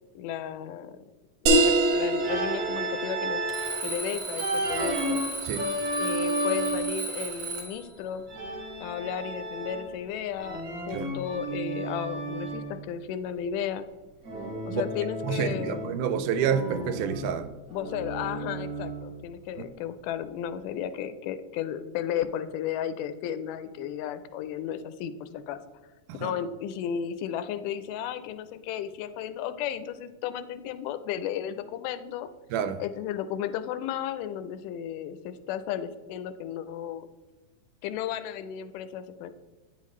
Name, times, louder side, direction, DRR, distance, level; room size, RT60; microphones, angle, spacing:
voice 1, 0.2-0.9 1.6-3.5 3.8-5.2 6.0-8.3 8.8-13.9 14.7-15.9 17.7-25.6 26.2-32.3 32.8-37.1 37.8-39.3, left 9 dB, 90° left, 2.1 m, -34 dB
sound 1, 1.5-6.8, right 2 dB, 65° right, 1.7 m, -28 dB
Organ, 2.2-3.8 4.4-7.0 8.3-10.0 10.4-12.7 14.2-16.1 16.4-19.1, right 1 dB, 40° right, 1.6 m, -33 dB
Alarm, 3.5-7.9, right 3 dB, 5° right, 1.2 m, -35 dB
voice 2, 15.2-17.5 26.2-26.3 32.5-32.8, right 8 dB, 80° right, 2.0 m, -28 dB
8.9 x 5.7 x 3.1 m
omnidirectional pair, 3.7 m